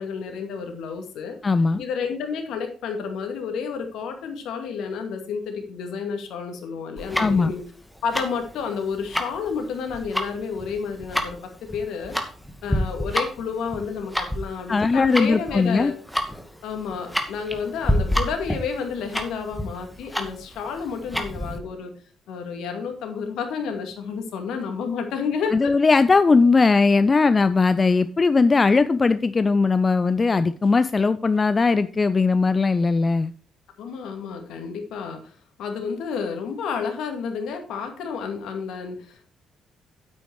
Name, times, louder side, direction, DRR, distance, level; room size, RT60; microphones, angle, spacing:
voice 1, 0.0-1.4 1.8-7.6 8.0-12.2 12.6-16.0 16.6-21.9 22.3-25.7 33.8-39.3, left 6 dB, 70° left, 5 dB, 2.2 m, -30 dB
voice 2, 1.4-1.8 7.2-7.5 14.7-15.9 25.5-33.3, left 4 dB, 35° left, 14 dB, 0.5 m, -19 dB
Tick-tock, 7.0-21.6, equal, 5° left, 2.2 m, -29 dB
9.9 x 8.3 x 4.7 m, 0.40 s
hypercardioid pair, 50°, 0 cm